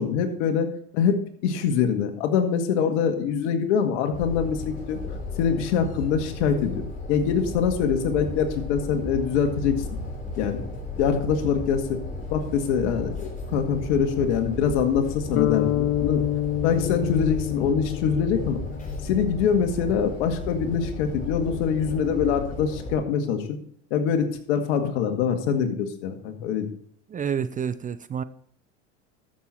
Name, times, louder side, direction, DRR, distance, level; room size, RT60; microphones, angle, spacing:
voice 1, 0.0-5.0 5.4-6.8 7.1-9.8 10.4-10.6 11.0-12.0 12.3-16.2 16.6-18.6 19.0-23.6 23.9-26.7, left 7 dB, 75° left, 6 dB, 1.9 m, -24 dB
sound 1, 4.1-23.0, left 2 dB, 25° left, 3.3 m, -34 dB
sound 2, 15.4-19.6, left 13 dB, 40° left, 0.7 m, -28 dB
voice 2, 27.1-28.2, right 7 dB, 25° right, 15 dB, 0.5 m, -29 dB
13.5 x 6.7 x 4.4 m, 0.64 s
supercardioid pair, 95°, 35 cm